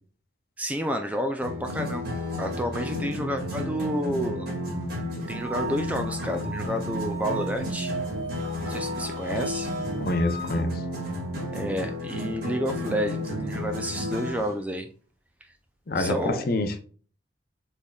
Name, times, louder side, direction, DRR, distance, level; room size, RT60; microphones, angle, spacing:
voice 1, 0.6-4.5 5.3-8.0 8.7-9.7 11.5-14.9 16.0-16.5, equal, 5° right, 0.3 m, -30 dB
sound 1, 1.4-14.5, left 1 dB, 50° right, 2.0 m, -32 dB
sound 2, 5.3-10.6, right 4 dB, 80° right, 1.7 m, -37 dB
voice 2, 10.0-10.8 15.9-16.8, left 2 dB, 50° left, 0.6 m, -26 dB
6.3 x 3.5 x 2.3 m
head